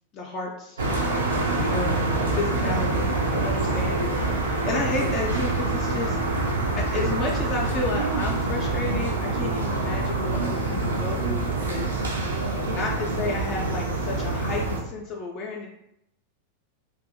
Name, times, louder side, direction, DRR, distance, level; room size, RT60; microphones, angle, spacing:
voice 1, 0.1-0.8 1.6-12.0 12.6-15.7, left 3 dB, 35° left, -1 dB, 0.3 m, -32 dB
sound 1, 0.8-14.8, right 2 dB, 70° right, 0.4 m, -26 dB
2.6 x 2.1 x 2.6 m, 0.80 s
figure-of-eight pair, 90°, 0 cm